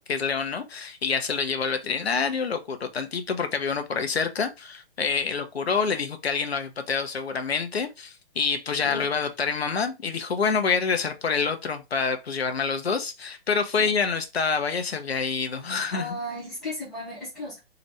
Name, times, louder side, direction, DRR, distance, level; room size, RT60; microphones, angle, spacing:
voice 1, 0.0-16.2, left 5 dB, 80° left, 0.7 m, -27 dB
voice 2, 8.8-9.1 13.7-13.9 15.9-17.6, left 1 dB, ahead, 0.3 m, -35 dB
2.7 x 2.5 x 3.2 m
figure-of-eight pair, 135°, 31 cm